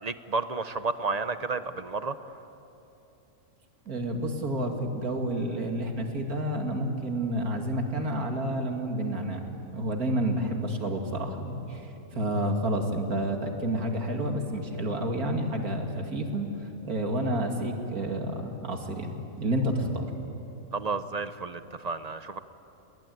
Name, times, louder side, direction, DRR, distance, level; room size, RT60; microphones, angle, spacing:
voice 1, 0.0-2.3 20.7-22.4, right 4 dB, 35° right, 11 dB, 0.7 m, -32 dB
voice 2, 3.9-11.9 12.1-16.5 16.8-19.1 19.4-20.1, right 1 dB, 90° right, 3 dB, 2.8 m, -29 dB
29.5 x 20.0 x 9.4 m, 3.0 s
omnidirectional pair, 1.5 m